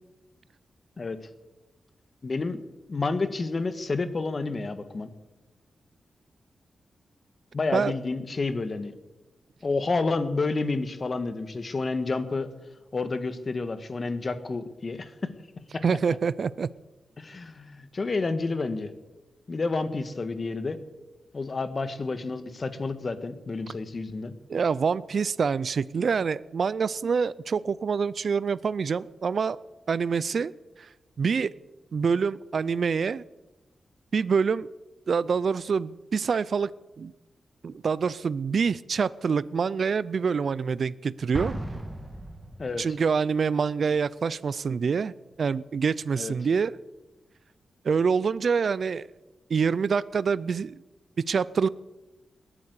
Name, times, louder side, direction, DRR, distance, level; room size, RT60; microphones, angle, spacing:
voice 1, 2.2-2.6 2.9-5.1 7.5-8.9 9.6-12.5 12.9-15.3 15.7-15.8 17.2-18.9 19.5-20.8 21.3-24.3 42.6-42.8 46.1-46.3, left 3 dB, 45° left, 11 dB, 1.6 m, -29 dB
voice 2, 15.8-16.7 24.5-29.6 29.9-30.5 30.8-30.9 31.2-31.5 31.9-33.2 34.1-34.7 35.1-36.7 37.0-37.1 37.6-41.6 42.8-46.8 47.8-49.1 49.5-50.8 51.3-51.7, right 5 dB, 65° right, 19 dB, 0.4 m, -26 dB
Explosion, 41.3-43.0, right 1 dB, 20° right, 2.4 m, -36 dB
19.5 x 9.0 x 8.3 m, 1.1 s
cardioid pair, 70°, 0 cm